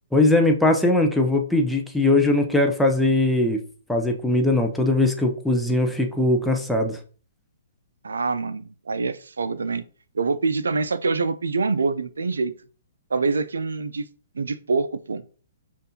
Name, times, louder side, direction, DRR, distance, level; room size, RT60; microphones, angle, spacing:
voice 1, 0.1-3.6 3.9-7.0, left 2 dB, ahead, 2 dB, 0.5 m, -20 dB
voice 2, 8.0-9.8 10.1-12.5 13.1-14.1 14.3-15.2, right 4 dB, 85° right, 14 dB, 0.4 m, -25 dB
5.3 x 2.5 x 2.8 m, 0.40 s
hypercardioid pair, 135°, 0 cm